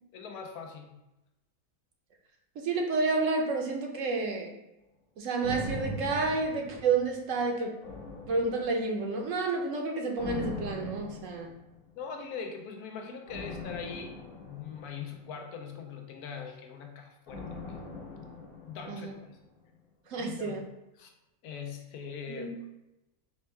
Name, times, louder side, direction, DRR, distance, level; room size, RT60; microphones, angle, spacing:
voice 1, 0.1-1.0 12.0-14.1 14.4-17.8 18.6-19.4 20.2-20.6 21.0-21.1 21.4-22.5, left 6 dB, 85° left, 4 dB, 1.1 m, -41 dB
voice 2, 2.6-4.5 5.2-7.7 8.3-11.5 18.9-19.1 20.1-20.6 22.3-22.5, right 3 dB, 65° right, 2 dB, 0.9 m, -30 dB
sound 1, 5.4-7.3 7.8-9.1 10.2-11.9 13.3-15.7 17.3-19.4 19.7-19.8, left 3 dB, 45° left, 1.0 m, -41 dB
4.4 x 2.2 x 4.3 m, 0.93 s
omnidirectional pair, 1.6 m